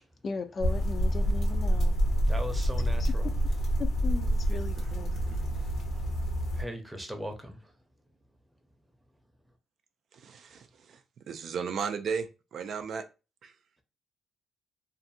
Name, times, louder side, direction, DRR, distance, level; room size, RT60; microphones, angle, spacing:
voice 1, 0.2-1.9 3.0-3.3 3.8-5.1, left 4 dB, 45° left, 0.4 m, -37 dB
sound 1, 0.6-6.6, equal, 75° left, 0.9 m, -27 dB
voice 2, 2.3-3.3 6.6-7.6, equal, 10° right, 0.7 m, -38 dB
voice 3, 10.1-11.0 11.3-13.0 13.4-13.5, right 6 dB, 60° right, 0.3 m, -35 dB
2.5 x 2.5 x 2.6 m
cardioid pair, 90°, 0 cm